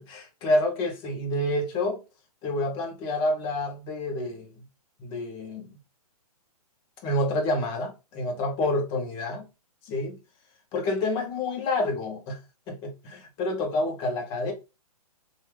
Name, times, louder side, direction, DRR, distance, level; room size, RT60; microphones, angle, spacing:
voice 1, 0.0-2.0 2.4-4.5 5.0-5.8 7.0-9.5 9.8-10.2 10.7-12.4 12.7-14.5, left 2 dB, 25° left, 0.8 m, -28 dB
3.0 x 2.4 x 3.1 m
hypercardioid pair, 140°, 20 cm